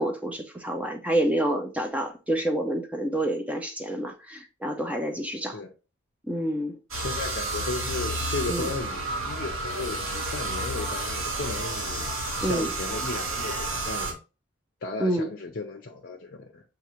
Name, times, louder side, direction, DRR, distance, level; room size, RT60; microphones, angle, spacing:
voice 1, 0.0-5.6 6.3-6.8 8.5-8.7 12.4-12.7 15.0-15.3, right 1 dB, 5° right, 0.6 m, -28 dB
voice 2, 6.9-14.2 14.8-16.6, left 3 dB, 50° left, 0.7 m, -35 dB
sound 1, 6.9-14.1, right 2 dB, 75° right, 1.3 m, -31 dB
6.9 x 2.5 x 3.0 m
head